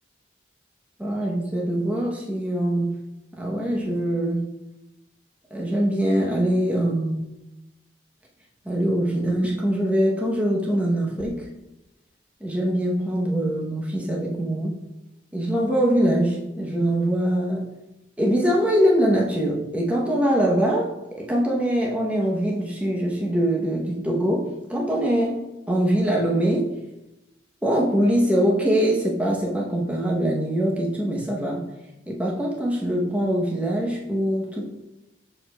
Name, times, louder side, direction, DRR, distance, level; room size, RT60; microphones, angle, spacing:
voice 1, 1.0-2.9 3.4-4.5 5.5-7.2 8.7-11.5 12.4-14.8 15.3-17.7 18.2-20.9 21.2-25.4 25.7-26.8 27.6-31.7 32.1-34.6, right 1 dB, 5° right, -3 dB, 0.7 m, -23 dB
7.0 x 6.4 x 2.2 m, 0.96 s
head